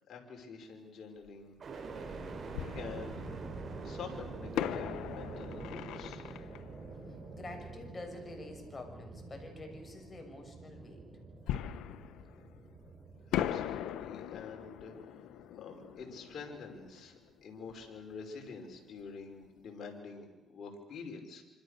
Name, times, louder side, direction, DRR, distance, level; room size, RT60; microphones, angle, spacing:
voice 1, 0.1-1.5 2.7-3.2 3.8-6.2 13.3-15.0 15.6-21.4, left 5 dB, 60° left, 2 dB, 5.6 m, -47 dB
Fireworks, 1.3-1.4 2.5-3.7 4.5-8.0 11.5-12.9 13.3-17.9 18.1-18.2 18.7-19.0, left 11 dB, 90° left, 1.1 m, -40 dB
sound 1, 1.6-15.6 16.1-16.8, right 3 dB, 50° right, 7.9 m, -46 dB
voice 2, 7.3-11.1, left 2 dB, 30° left, 3 dB, 6.6 m, -47 dB
26.5 x 26.0 x 6.8 m, 1.1 s
cardioid pair, 90°, 0 cm